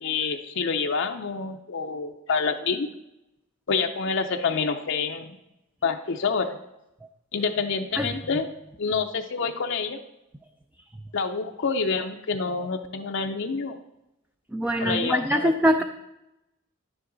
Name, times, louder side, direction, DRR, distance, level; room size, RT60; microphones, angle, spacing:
voice 1, 0.0-2.9 3.7-5.4 5.8-6.6 7.3-8.5 8.8-10.0 11.1-13.8 14.8-15.5, left 5 dB, 60° left, 4 dB, 0.6 m, -27 dB
voice 2, 14.5-15.8, equal, 10° right, 6 dB, 0.4 m, -23 dB
10.5 x 9.5 x 3.9 m, 0.90 s
head